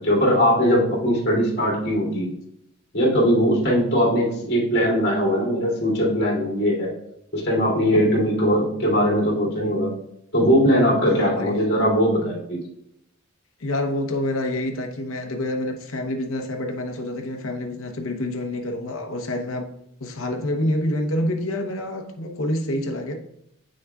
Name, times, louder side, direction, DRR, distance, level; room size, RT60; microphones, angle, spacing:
voice 1, 0.0-2.3 2.9-6.9 7.3-9.9 10.3-12.6, equal, 50° left, 2.5 m, -20 dB
voice 2, 11.0-11.6 13.6-19.7 20.0-23.1, left 1 dB, 75° left, 0.9 m, -27 dB
7.5 x 6.3 x 2.3 m
head